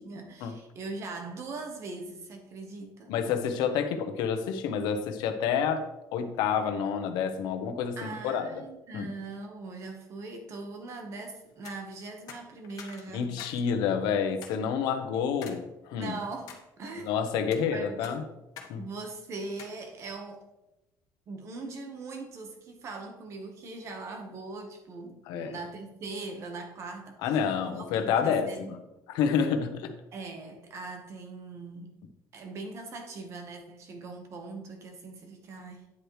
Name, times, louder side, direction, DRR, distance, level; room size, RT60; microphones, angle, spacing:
voice 1, 0.0-3.1 8.0-13.6 15.9-17.1 17.7-18.2 18.8-20.5 21.3-27.4 27.7-28.8 30.1-31.9 32.3-35.9, right 3 dB, 40° right, 4 dB, 1.4 m, -41 dB
voice 2, 3.1-5.8 6.1-8.5 8.9-9.1 13.1-16.1 17.0-18.2 18.7-18.8 25.3-25.6 27.2-28.8 29.1-29.9, left 7 dB, 85° left, 7 dB, 1.0 m, -28 dB
sound 1, 11.5-11.8 12.3-13.6 13.9-14.0 14.4-14.6 15.4-15.6 16.1-16.6 17.3-17.7 18.0-18.7 19.0-19.1 19.6-19.8, left 7 dB, 55° left, 1.4 m, -46 dB
9.7 x 8.0 x 3.3 m, 0.94 s
cardioid pair, 160°, 7 cm